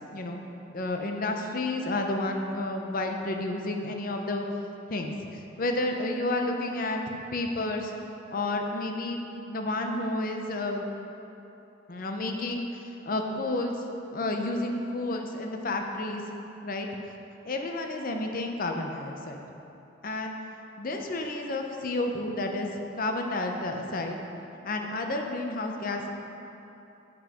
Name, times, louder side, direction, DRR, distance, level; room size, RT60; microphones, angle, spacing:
voice 1, 0.7-4.4 4.9-7.9 8.3-9.2 9.5-10.8 11.9-13.7 14.1-16.2 16.6-16.9 17.4-19.4 20.0-20.4 20.8-24.2 24.6-26.1, left 2 dB, 50° left, 3 dB, 0.7 m, -31 dB
7.4 x 6.4 x 4.8 m, 2.9 s
head